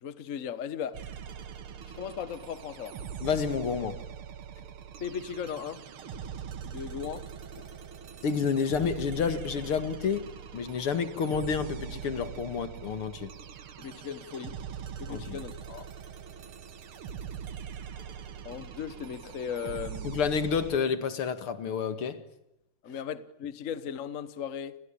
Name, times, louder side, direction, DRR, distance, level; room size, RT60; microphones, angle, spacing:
voice 1, 0.0-1.0 1.9-3.0 5.0-5.8 6.6-7.3 13.8-14.6 15.0-15.9 18.4-20.1 22.8-24.8, left 8 dB, 45° left, 1.4 m, -37 dB
sound 1, 0.9-20.8, right 8 dB, 80° right, 2.3 m, -42 dB
voice 2, 3.2-4.0 8.2-13.3 15.1-15.4 20.0-22.2 22.9-23.0, left 6 dB, 80° left, 2.8 m, -30 dB
29.5 x 21.0 x 8.9 m
omnidirectional pair, 2.3 m